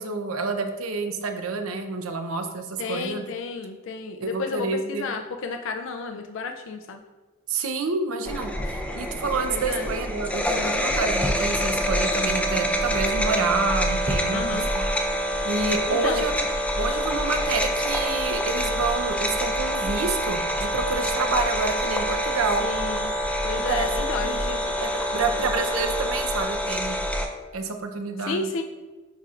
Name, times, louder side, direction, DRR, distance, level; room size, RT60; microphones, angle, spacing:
voice 1, 0.0-3.3 4.2-5.1 7.5-14.8 15.4-16.3 16.8-22.6 23.7-23.9 24.2-27.0 27.5-28.5, right 4 dB, 85° right, 6 dB, 0.7 m, -28 dB
voice 2, 2.8-7.0 9.5-9.9 14.3-14.7 15.9-16.3 22.6-23.1 23.4-24.6 28.3-28.6, left 4 dB, 60° left, 5 dB, 0.4 m, -32 dB
sound 1, 8.3-27.3, equal, 5° left, 0.5 m, -26 dB
9.6 x 4.3 x 2.5 m, 1.3 s
head